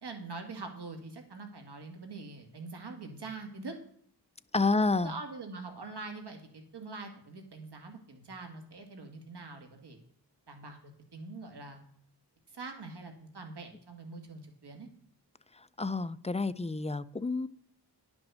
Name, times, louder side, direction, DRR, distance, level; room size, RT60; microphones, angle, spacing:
voice 1, 0.0-3.8 4.5-4.6 5.0-10.0 10.5-11.8 12.5-14.9, right 3 dB, 65° right, 4 dB, 2.0 m, -44 dB
voice 2, 4.5-5.2 15.5-17.5, left 3 dB, 15° left, 14 dB, 0.4 m, -29 dB
10.5 x 6.2 x 6.2 m, 0.63 s
wide cardioid pair, 80°, 43 cm